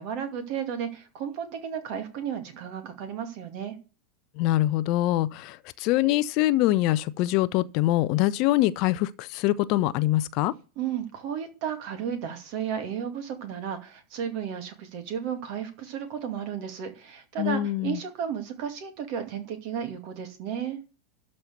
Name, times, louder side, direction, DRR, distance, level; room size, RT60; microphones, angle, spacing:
voice 1, 0.0-3.7 10.8-20.8, right 8 dB, 45° right, 2.3 m, -33 dB
voice 2, 4.4-10.5 17.4-18.0, left 15 dB, 40° left, 0.5 m, -24 dB
12.5 x 4.4 x 8.0 m
figure-of-eight pair, 90°, 0 cm